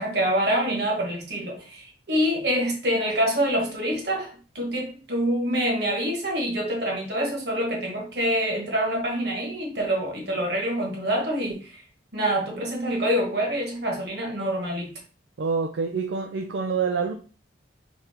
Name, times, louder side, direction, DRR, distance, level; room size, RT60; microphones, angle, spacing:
voice 1, 0.0-11.8 12.1-14.9, equal, 60° right, 1.4 m, -26 dB
voice 2, 15.4-17.1, right 5 dB, 75° right, 0.5 m, -26 dB
4.1 x 3.4 x 3.5 m
head